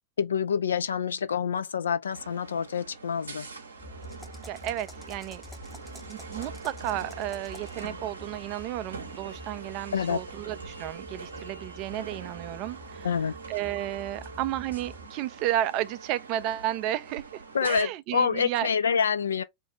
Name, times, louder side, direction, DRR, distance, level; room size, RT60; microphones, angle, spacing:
voice 1, 0.2-3.5 9.9-10.2 13.0-13.3 17.5-19.4, left 7 dB, 70° left, 0.4 m, -27 dB
sound 1, 2.1-17.8, right 4 dB, 75° right, 0.7 m, -44 dB
sound 2, 3.8-15.1, left 1 dB, 30° left, 1.1 m, -48 dB
sound 3, 4.0-8.0, left 1 dB, ahead, 0.7 m, -51 dB
voice 2, 4.4-5.4 6.1-13.1 13.5-18.7, right 13 dB, 40° right, 0.4 m, -32 dB
2.6 x 2.3 x 3.6 m
figure-of-eight pair, 90°, 0 cm